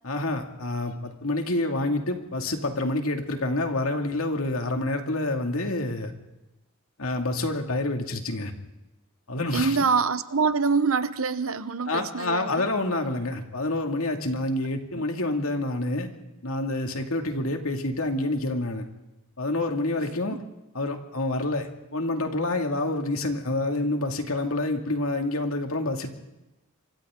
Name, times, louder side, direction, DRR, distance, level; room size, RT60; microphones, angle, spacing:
voice 1, 0.0-6.1 7.0-8.5 9.3-9.8 11.9-16.1 16.4-18.8 19.4-20.4 20.7-26.1, left 2 dB, 75° left, 2.5 m, -28 dB
voice 2, 9.5-12.7 20.3-20.4, right 5 dB, 75° right, 1.0 m, -25 dB
27.5 x 25.0 x 3.8 m
head